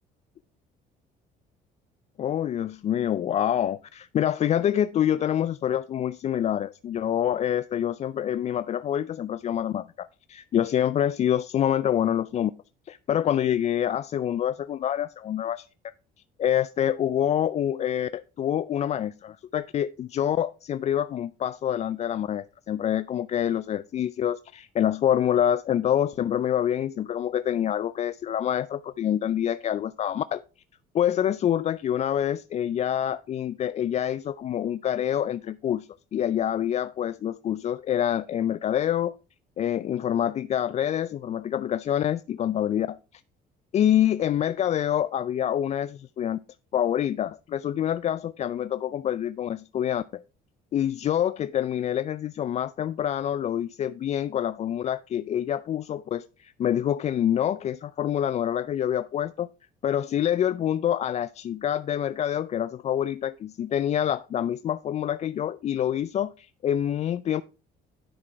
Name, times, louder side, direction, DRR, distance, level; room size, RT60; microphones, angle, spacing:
voice 1, 2.2-12.5 12.9-15.9 16.4-30.4 30.9-39.1 39.6-43.0 43.7-46.4 46.7-50.2 50.7-59.5 59.8-67.4, left 10 dB, 40° left, 0.4 m, -26 dB
10.0 x 6.1 x 4.4 m
cardioid pair, 110°, 17 cm